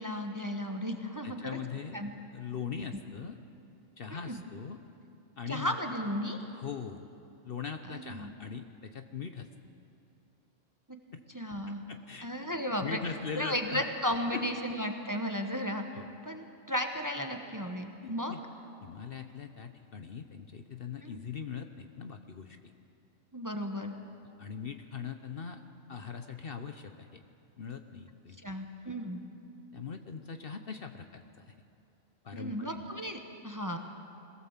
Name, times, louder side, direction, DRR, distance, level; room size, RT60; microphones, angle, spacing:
voice 1, 0.0-1.6 1.9-2.1 2.9-3.0 4.1-4.3 5.5-6.4 7.8-8.3 11.3-11.8 12.2-13.0 13.3-15.8 16.2-18.3 21.0-21.2 23.3-23.9 28.4-29.2 32.3-33.8, equal, 15° right, 4 dB, 1.1 m, -34 dB
voice 2, 1.2-2.0 2.3-3.4 4.0-4.8 5.4-5.8 6.5-7.0 7.4-9.5 11.1-11.2 11.9-12.3 12.8-13.9 14.3-14.4 15.5-15.6 16.0-16.1 18.0-18.4 18.8-22.6 24.4-25.6 25.9-27.2 27.6-28.4 29.7-31.5 32.2-32.8, left 6 dB, 50° left, 7 dB, 1.0 m, -41 dB
22.0 x 17.0 x 7.3 m, 2.6 s
omnidirectional pair, 1.3 m